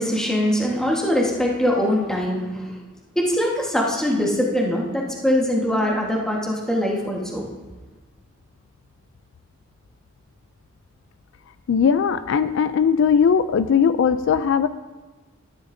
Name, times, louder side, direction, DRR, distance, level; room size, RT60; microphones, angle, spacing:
voice 1, 0.0-2.7 3.1-7.4, equal, 5° left, -2 dB, 1.4 m, -22 dB
voice 2, 11.7-14.7, left 7 dB, 65° left, 13 dB, 0.3 m, -19 dB
13.0 x 10.5 x 2.7 m, 1.2 s
head